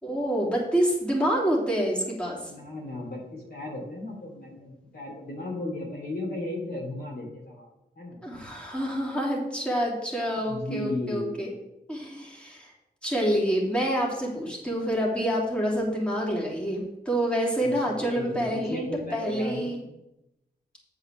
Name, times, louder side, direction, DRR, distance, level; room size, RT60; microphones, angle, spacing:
voice 1, 0.0-2.5 8.2-11.5 11.9-12.7 13.0-19.8, equal, 5° left, -4 dB, 3.2 m, -27 dB
voice 2, 2.4-7.7 8.0-8.2 10.4-11.4 17.6-19.7, left 2 dB, 65° left, -2 dB, 3.1 m, -35 dB
8.3 x 4.9 x 6.4 m, 0.90 s
cardioid pair, 55°, 18 cm